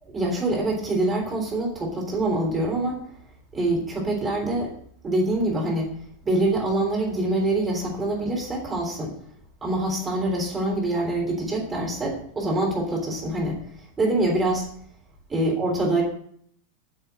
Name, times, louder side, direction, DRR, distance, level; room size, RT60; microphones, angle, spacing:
voice 1, 0.0-3.0 3.5-4.7 5.0-5.9 6.2-9.1 9.6-13.6 14.0-14.7 15.3-16.0, right 2 dB, 15° right, -1 dB, 3.5 m, -25 dB
8.8 x 6.5 x 7.7 m, 0.63 s
figure-of-eight pair, 90°, 0 cm